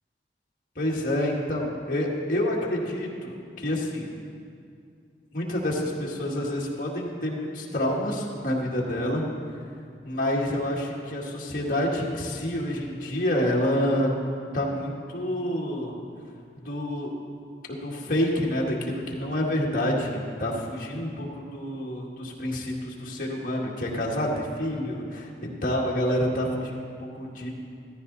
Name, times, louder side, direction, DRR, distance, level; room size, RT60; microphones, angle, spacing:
voice 1, 0.8-4.1 5.3-9.3 10.0-14.1 14.5-16.0 16.6-17.1 17.7-27.5, left 1 dB, 50° left, -3 dB, 2.0 m, -28 dB
15.0 x 14.0 x 4.1 m, 2.3 s
head